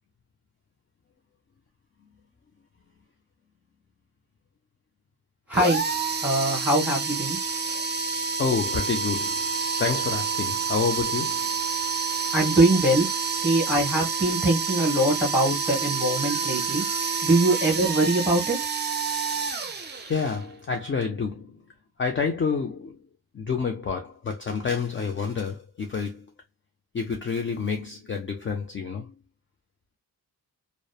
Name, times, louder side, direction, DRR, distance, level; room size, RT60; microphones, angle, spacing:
voice 1, 5.5-5.8 6.2-7.4 12.3-13.1 13.4-18.6, right 1 dB, 5° right, 1.2 m, -22 dB
sound 1, 5.5-20.4, right 5 dB, 30° right, 0.4 m, -28 dB
voice 2, 8.4-9.5 9.8-11.5 12.0-12.4 20.0-21.6 22.0-23.1 23.3-26.3 26.9-29.2, left 5 dB, 35° left, 0.4 m, -29 dB
2.9 x 2.1 x 2.2 m
wide cardioid pair, 155°, 38 cm